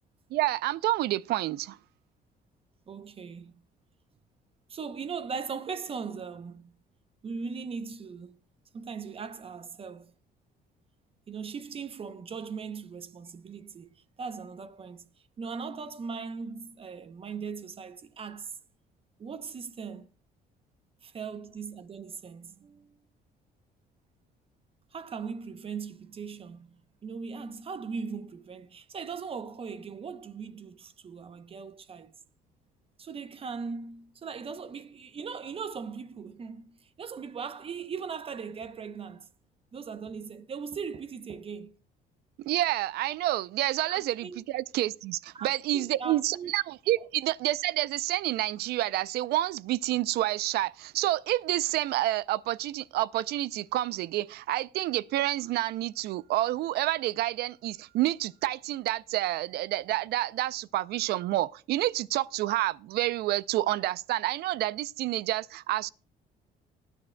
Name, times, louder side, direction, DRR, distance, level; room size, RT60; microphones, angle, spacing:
voice 1, 0.3-1.8 42.4-65.9, right 15 dB, 70° right, 0.4 m, -29 dB
voice 2, 2.9-3.6 4.7-6.8 7.2-8.4 8.7-10.1 11.3-15.1 15.4-18.5 19.2-20.1 21.0-23.0 24.9-32.1 33.0-39.3 39.7-41.7 43.9-44.4 45.3-46.5 47.0-47.1, right 5 dB, 35° right, 0.7 m, -39 dB
19.5 x 9.9 x 2.2 m
cardioid pair, 110°, 17 cm